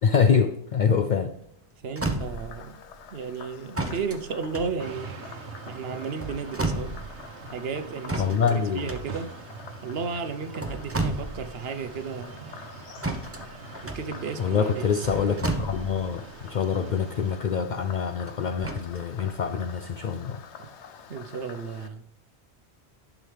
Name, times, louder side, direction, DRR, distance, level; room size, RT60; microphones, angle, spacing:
voice 1, 0.0-1.3 8.2-8.9 14.4-20.4, left 6 dB, 55° left, 0.5 m, -25 dB
sound 1, 1.4-1.5 1.8-2.7 3.7-5.4 6.0-7.2 8.1-9.5 10.4-11.6 11.9-12.0 13.0-16.2 18.3-19.0 19.7-19.8, right 2 dB, 15° right, 0.8 m, -32 dB
voice 2, 1.8-2.8 3.1-5.2 5.6-7.0 7.5-9.3 9.8-12.6 13.8-14.9 20.6-20.7 21.1-22.1, right 5 dB, 65° right, 1.0 m, -34 dB
Frog, 2.2-21.9, left 7 dB, 85° left, 1.1 m, -48 dB
sound 2, 4.8-17.4, right 5 dB, 85° right, 1.2 m, -43 dB
11.0 x 6.2 x 3.3 m
omnidirectional pair, 1.1 m